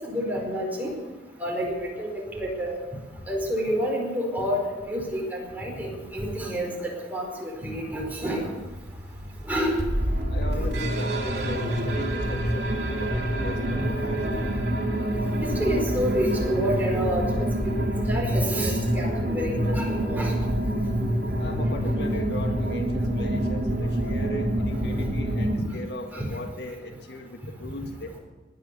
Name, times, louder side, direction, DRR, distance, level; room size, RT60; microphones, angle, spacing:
voice 1, 0.0-0.9 1.4-2.1 2.3-2.7 3.3-8.4 9.5-9.8 15.6-17.5 18.1-20.3 26.1-26.2, equal, 10° right, -1 dB, 4.6 m, -28 dB
sound 1, 8.5-25.6, right 1 dB, 75° right, 3.4 m, -27 dB
voice 2, 10.3-14.2 21.4-28.2, left 1 dB, 70° left, 4 dB, 1.7 m, -38 dB
19.0 x 10.0 x 6.8 m, 1.2 s
head